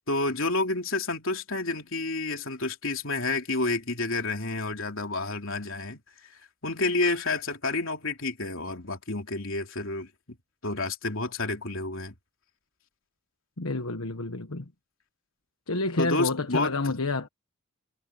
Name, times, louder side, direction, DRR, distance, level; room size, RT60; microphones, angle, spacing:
voice 1, 0.1-6.0 6.6-10.1 10.6-12.1 16.0-16.9, left 2 dB, 65° left, 3.3 m, -29 dB
voice 2, 13.6-14.7 15.7-17.3, left 3 dB, 80° left, 1.3 m, -29 dB
head